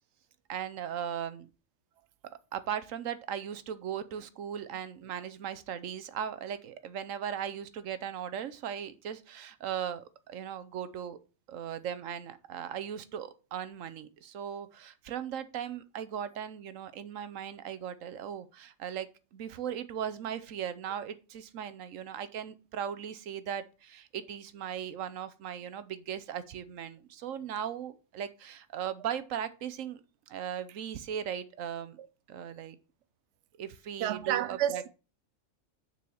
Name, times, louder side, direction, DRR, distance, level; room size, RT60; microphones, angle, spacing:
voice 1, 0.5-1.5 2.5-11.2 11.5-30.0 30.3-32.0 32.3-32.8 33.6-34.8, right 9 dB, 85° right, 1.1 m, -38 dB
voice 2, 34.0-34.9, right 11 dB, 65° right, 0.9 m, -30 dB
6.9 x 4.6 x 6.3 m
omnidirectional pair, 1.3 m